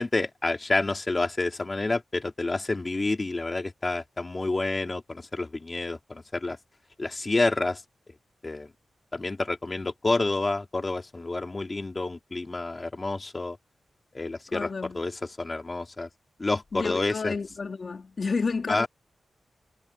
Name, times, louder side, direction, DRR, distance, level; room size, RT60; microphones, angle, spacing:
voice 1, 0.0-6.6 7.0-7.8 8.4-8.7 9.1-13.6 14.1-16.1 16.4-17.3 18.7-18.9, left 2 dB, 25° left, 3.5 m, -29 dB
voice 2, 14.5-15.0 16.7-18.9, left 4 dB, 45° left, 3.2 m, -30 dB
wide cardioid pair, 160°, 0 cm